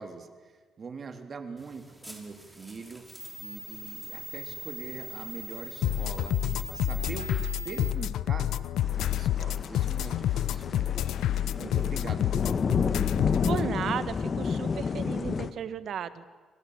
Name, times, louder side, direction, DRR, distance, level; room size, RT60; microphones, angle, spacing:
voice 1, 0.0-3.0 3.4-8.5 8.9-11.2 11.6-12.7, right 4 dB, 45° right, 6 dB, 3.4 m, -43 dB
sound 1, 1.6-7.9, equal, ahead, 5.3 m, -43 dB
sound 2, 5.8-13.6, left 12 dB, 80° left, 0.8 m, -28 dB
sound 3, 8.8-15.5, left 5 dB, 40° left, 1.4 m, -31 dB
voice 2, 13.4-16.2, right 8 dB, 65° right, 12 dB, 1.7 m, -34 dB
28.0 x 24.0 x 8.2 m, 1.4 s
cardioid pair, 90°, 0 cm